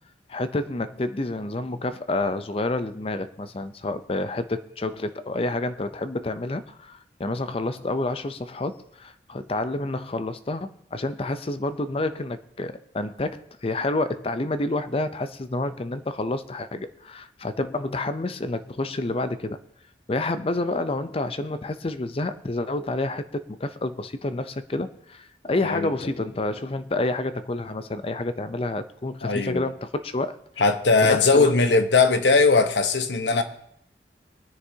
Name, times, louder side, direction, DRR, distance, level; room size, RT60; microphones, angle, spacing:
voice 1, 0.3-19.6 20.1-30.4 31.0-31.5, left 2 dB, 35° left, 0.5 m, -29 dB
voice 2, 29.2-29.6 30.6-33.4, left 3 dB, 90° left, 1.0 m, -19 dB
22.5 x 9.8 x 2.8 m
head